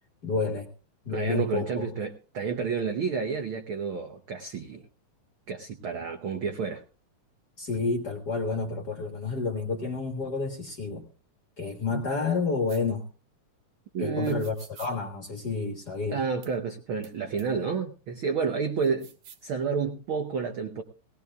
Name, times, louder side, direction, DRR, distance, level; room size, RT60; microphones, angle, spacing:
voice 1, 0.2-0.7 1.0-1.8 7.6-11.1 11.6-13.0 14.0-16.2, left 4 dB, 45° left, 4 dB, 1.4 m, -30 dB
voice 2, 1.1-4.8 5.5-6.8 11.9-12.0 13.9-14.5 16.1-19.1 19.4-20.8, right 5 dB, 85° right, 6 dB, 1.1 m, -30 dB
sound 1, 12.7-12.8 14.2-14.9 16.4-16.5 17.0-17.1 17.4-17.5 18.8-19.5, right 8 dB, 65° right, 2.7 m, -50 dB
19.5 x 17.5 x 2.3 m, 0.34 s
omnidirectional pair, 3.7 m